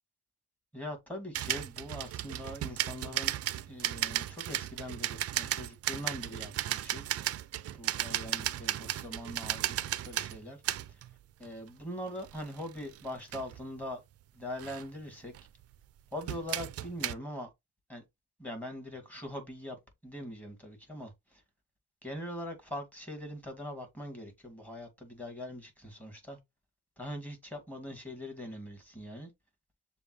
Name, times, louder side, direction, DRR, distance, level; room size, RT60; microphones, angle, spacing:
voice 1, 0.7-3.3 3.7-7.0 7.7-10.6 10.9-11.0 11.4-14.0 14.3-15.3 16.1-17.5 17.9-18.0 18.4-19.8 20.0-21.4 22.0-26.4 27.0-29.3, left 1 dB, 5° left, 2.0 m, -42 dB
sound 1, 1.3-11.2 11.4-11.7 12.2-13.8 14.6-14.9 15.3-15.7 16.2-17.1, right 13 dB, 55° right, 0.4 m, -35 dB
6.8 x 2.3 x 3.0 m
cardioid pair, 90°, 30 cm